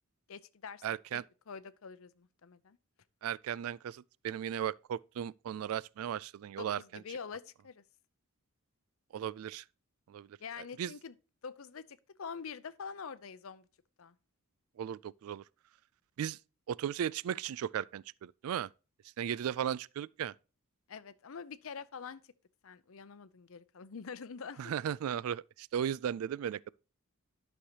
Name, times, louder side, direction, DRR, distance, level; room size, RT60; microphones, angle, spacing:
voice 1, 0.3-0.8 1.1-2.8 6.6-7.8 10.4-11.1 11.4-13.7 14.0-14.1 20.9-22.2 22.6-24.7, left 6 dB, 65° left, 0.6 m, -45 dB
voice 2, 0.8-1.2 3.2-7.0 9.1-9.6 10.1-10.3 10.8-10.9 14.8-15.4 16.2-16.4 16.7-18.7 19.2-20.3 24.6-26.7, right 9 dB, 75° right, 0.3 m, -36 dB
11.5 x 6.5 x 2.9 m
head